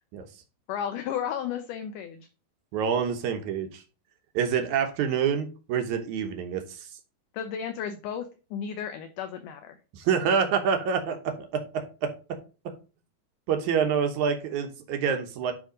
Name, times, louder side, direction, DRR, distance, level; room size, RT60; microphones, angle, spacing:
voice 1, 0.7-2.3 7.3-9.8, left 8 dB, 75° left, 8 dB, 2.0 m, -33 dB
voice 2, 2.7-3.8 4.3-6.9 9.9-12.1 13.5-15.5, right 7 dB, 70° right, 5 dB, 2.0 m, -27 dB
10.0 x 3.5 x 5.1 m, 0.33 s
omnidirectional pair, 4.3 m